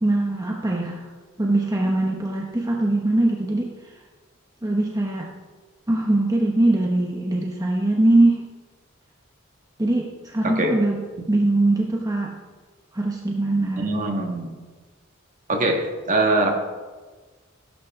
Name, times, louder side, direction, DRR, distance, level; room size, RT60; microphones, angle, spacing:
voice 1, 0.0-1.1 1.4-3.7 4.6-5.3 5.9-8.4 9.8-11.0 11.3-12.3 12.9-13.8, right 2 dB, 20° right, -1 dB, 1.1 m, -21 dB
voice 2, 13.8-14.5 15.5-16.5, right 2 dB, 40° right, 2 dB, 1.8 m, -22 dB
17.0 x 11.5 x 3.7 m, 1.4 s
head